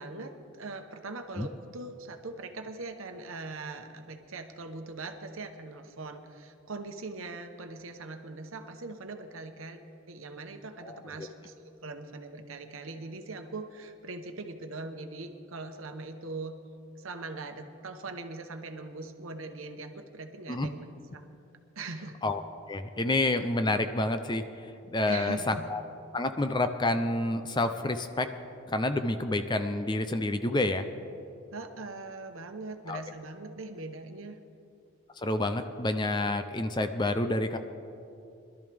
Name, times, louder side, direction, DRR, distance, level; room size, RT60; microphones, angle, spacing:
voice 1, 0.0-9.8 10.1-16.6 17.0-20.8 21.1-21.2 21.8-22.2 25.0-25.7 31.5-34.4, right 3 dB, 75° right, 6 dB, 1.0 m, -41 dB
voice 2, 10.8-11.3 20.5-20.7 22.2-22.4 22.7-24.4 24.9-25.8 26.1-28.3 28.7-30.8 32.9-33.0 35.2-37.6, left 2 dB, 20° left, 8 dB, 0.5 m, -28 dB
21.5 x 12.5 x 3.5 m, 2.7 s
head